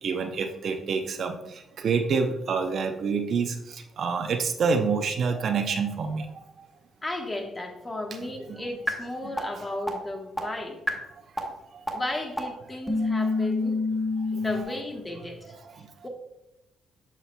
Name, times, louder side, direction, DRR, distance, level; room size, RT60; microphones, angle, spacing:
voice 1, 0.0-6.4 11.7-11.8 13.2-13.3 15.6-15.9, right 5 dB, 60° right, 6 dB, 0.6 m, -27 dB
voice 2, 7.0-10.8 11.9-13.8 14.3-15.5 16.0-16.1, left 1 dB, 20° left, 2 dB, 1.2 m, -34 dB
sound 1, 8.9-9.0 9.4-9.5 9.9-10.0 10.4-10.5 10.9-11.0 11.4-11.5 11.9-12.0 12.4-12.5 12.9-14.6, left 2 dB, ahead, 1.4 m, -26 dB
8.2 x 5.8 x 2.2 m, 0.88 s
cardioid pair, 90°, 0 cm